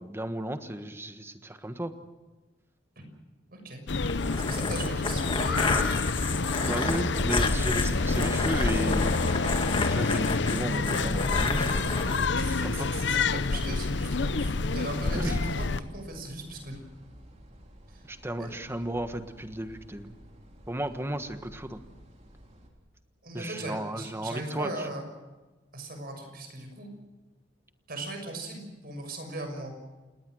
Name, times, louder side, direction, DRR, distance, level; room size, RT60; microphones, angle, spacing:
voice 1, 0.0-1.9 6.5-9.2 9.7-11.8 12.3-12.9 15.1-15.5 18.1-20.1 20.7-21.8 23.3-24.9, right 1 dB, 15° right, 9 dB, 1.4 m, -34 dB
voice 2, 3.5-3.8 4.3-6.0 12.4-16.8 17.9-18.1 18.4-18.5 23.2-25.0 25.7-26.9 27.9-29.7, right 2 dB, 55° right, 5 dB, 6.3 m, -38 dB
sound 1, 3.9-15.8, left 3 dB, 70° left, 0.8 m, -27 dB
sound 2, 4.1-12.3, left 4 dB, 30° left, 1.9 m, -32 dB
sound 3, 7.1-22.7, equal, 40° right, 3.7 m, -43 dB
29.0 x 19.0 x 6.4 m, 1.2 s
head